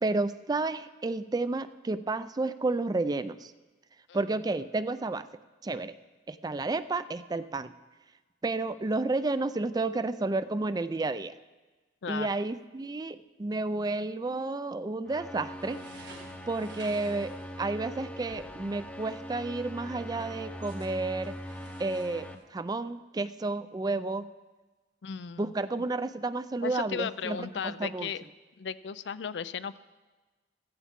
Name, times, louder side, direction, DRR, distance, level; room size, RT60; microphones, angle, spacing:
voice 1, 0.0-3.5 4.1-5.3 5.6-5.9 6.3-7.7 8.4-11.3 12.1-16.1 16.5-21.4 21.8-24.3 25.4-27.4 27.6-28.1, right 3 dB, 20° right, 13 dB, 0.4 m, -31 dB
sound 1, 15.1-22.3, equal, 10° left, 0.7 m, -42 dB
sound 2, 15.4-22.4, right 3 dB, 80° right, 1.9 m, -54 dB
voice 2, 25.0-25.9 26.6-28.2 28.6-29.8, left 6 dB, 80° left, 15 dB, 0.4 m, -36 dB
15.5 x 14.0 x 3.7 m, 1.2 s
head